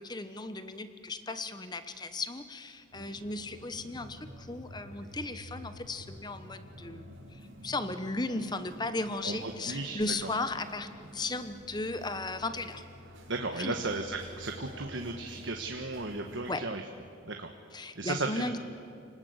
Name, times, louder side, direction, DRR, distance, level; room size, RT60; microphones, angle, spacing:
voice 1, 0.0-7.0 7.3-12.8 13.6-13.7 16.5-16.6 17.7-18.6, left 2 dB, 20° left, 10 dB, 1.1 m, -36 dB
sound 1, 2.9-16.5, equal, 80° right, 4.3 m, -49 dB
voice 2, 9.2-10.3 13.3-16.8 17.2-17.5 17.9-18.6, right 3 dB, 65° right, 3 dB, 1.4 m, -35 dB
29.5 x 19.5 x 8.1 m, 2.5 s
head